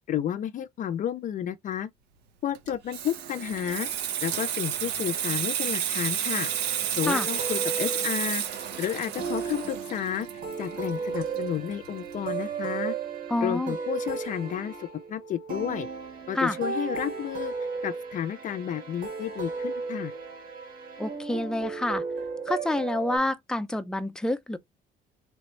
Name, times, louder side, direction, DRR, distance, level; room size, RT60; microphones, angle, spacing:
voice 1, 0.1-1.9 2.4-3.9 4.2-6.5 7.0-10.3 10.6-12.9 13.4-15.9 16.3-17.5 17.8-20.1, left 10 dB, 50° left, 0.5 m, -31 dB
Water tap faucet / Sink (filling or washing), 2.5-11.9 12.1-12.4, right 10 dB, 85° right, 0.9 m, -31 dB
sound 1, 6.2-23.2, right 5 dB, 55° right, 1.7 m, -35 dB
voice 2, 13.3-13.7 16.3-16.6 21.0-22.0 22.5-24.6, left 1 dB, 5° left, 0.6 m, -28 dB
3.3 x 3.1 x 3.1 m
cardioid pair, 110°, 17 cm